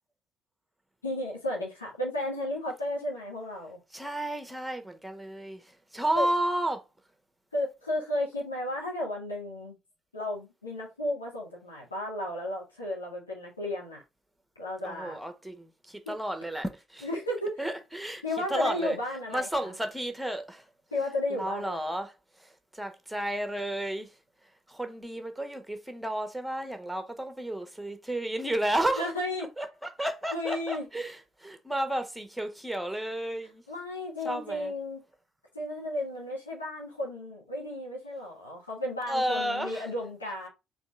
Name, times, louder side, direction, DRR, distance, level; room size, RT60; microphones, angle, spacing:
voice 1, 1.0-3.8 6.1-6.3 7.5-9.8 10.1-14.0 14.6-15.2 16.1-16.2 17.0-17.6 18.2-19.7 20.9-21.9 29.0-29.5 30.3-30.9 33.7-35.0 35.5-40.5, left 1 dB, 90° left, 1.2 m, -33 dB
voice 2, 3.9-6.8 14.8-17.1 17.6-18.2 18.5-19.0 19.3-20.6 21.3-22.1 22.4-24.1 24.7-29.1 29.6-33.6 34.2-34.7 39.1-39.9, right 1 dB, 5° right, 1.2 m, -32 dB
4.3 x 3.2 x 3.8 m
figure-of-eight pair, 50°, 0 cm